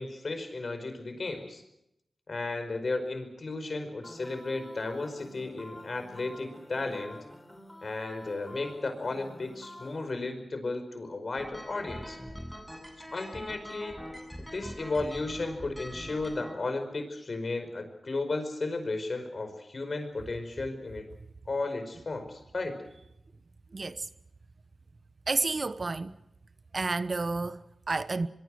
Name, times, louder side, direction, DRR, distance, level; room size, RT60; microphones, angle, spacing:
voice 1, 0.0-1.6 2.3-7.2 7.8-12.2 13.0-14.0 14.4-21.1 21.5-22.8, left 3 dB, 60° left, 5.1 m, -34 dB
sound 1, 4.0-10.1, left 1 dB, 20° left, 4.9 m, -49 dB
sound 2, 11.4-16.5, equal, ahead, 7.7 m, -43 dB
voice 2, 23.7-24.1 25.3-26.1 26.7-28.3, right 3 dB, 50° right, 1.0 m, -30 dB
23.5 x 23.5 x 6.5 m
cardioid pair, 45°, 0 cm